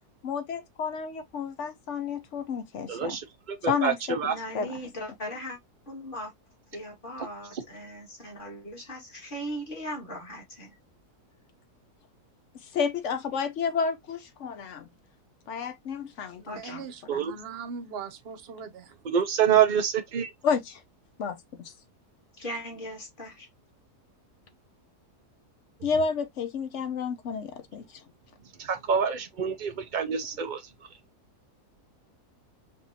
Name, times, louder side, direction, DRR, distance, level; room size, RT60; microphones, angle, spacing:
voice 1, 0.2-3.2 3.6-4.2 4.5-4.8 12.7-14.9 15.5-17.2 20.4-20.8 21.2-21.4 25.8-27.9, left 6 dB, 55° left, 1.0 m, -31 dB
voice 2, 2.9-4.3 7.5-7.6 17.1-17.3 19.0-20.3 28.6-30.6, right 8 dB, 80° right, 0.4 m, -26 dB
voice 3, 4.3-5.6 5.9-6.3 6.7-10.7 16.5-16.8 22.4-23.5, equal, 30° left, 2.0 m, -38 dB
voice 4, 16.4-18.9, right 6 dB, 50° right, 0.8 m, -40 dB
5.2 x 2.6 x 2.7 m
omnidirectional pair, 1.7 m